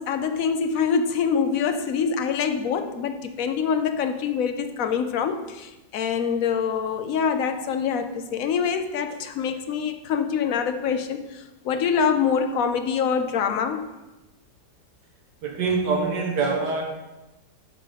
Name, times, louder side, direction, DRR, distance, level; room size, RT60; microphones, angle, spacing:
voice 1, 0.0-13.8, left 6 dB, 65° left, 8 dB, 0.9 m, -25 dB
voice 2, 15.4-16.8, right 4 dB, 75° right, 0 dB, 1.7 m, -24 dB
10.5 x 3.8 x 5.1 m, 1.0 s
omnidirectional pair, 1.9 m